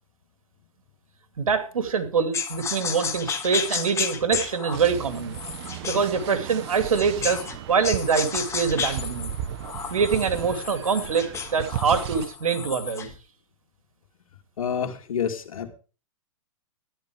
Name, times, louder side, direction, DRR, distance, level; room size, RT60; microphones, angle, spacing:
voice 1, 1.4-5.4 5.9-9.3 9.9-13.1, right 6 dB, 85° right, 8 dB, 2.7 m, -24 dB
sound 1, 2.3-7.6 7.8-13.1, left 6 dB, 15° left, 1.9 m, -32 dB
sound 2, 4.7-12.3, right 11 dB, 50° right, 1.3 m, -35 dB
voice 2, 14.6-15.7, left 7 dB, 80° left, 6 dB, 2.7 m, -28 dB
13.5 x 11.0 x 4.9 m, 0.36 s
hypercardioid pair, 130°, 17 cm